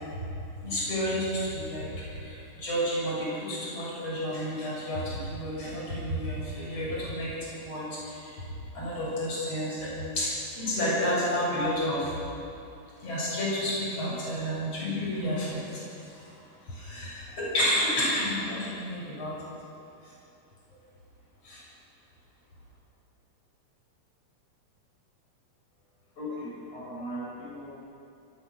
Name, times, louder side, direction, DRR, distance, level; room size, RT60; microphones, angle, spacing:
voice 1, 0.6-8.5 8.7-12.2 13.0-16.3 16.6-19.5 20.0-20.1 21.4-21.6, equal, 50° left, -6 dB, 8.0 m, -31 dB
voice 2, 26.2-27.8, equal, 80° left, -6 dB, 7.2 m, -38 dB
23.5 x 19.0 x 6.5 m, 2.7 s
omnidirectional pair, 3.5 m